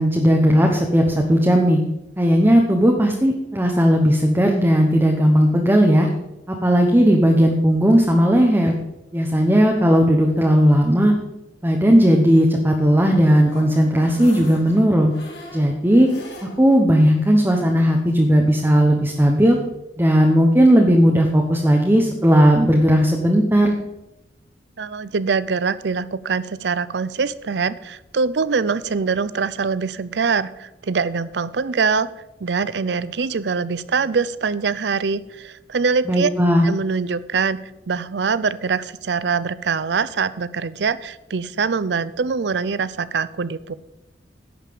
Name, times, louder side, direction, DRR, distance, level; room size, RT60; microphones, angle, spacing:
voice 1, 0.0-1.8 2.2-6.1 6.5-8.7 9.1-11.1 11.6-15.1 15.5-16.1 16.4-19.6 20.0-23.7 36.1-36.7, equal, 15° right, 1 dB, 1.1 m, -16 dB
sound 1, 12.9-16.8 17.2-17.3 17.6-17.7, left 1 dB, 70° left, 3.1 m, -39 dB
voice 2, 24.8-32.1 32.4-36.3 36.6-37.6 37.9-43.7, right 5 dB, 70° right, 17 dB, 0.5 m, -23 dB
11.0 x 5.8 x 8.6 m, 0.93 s
head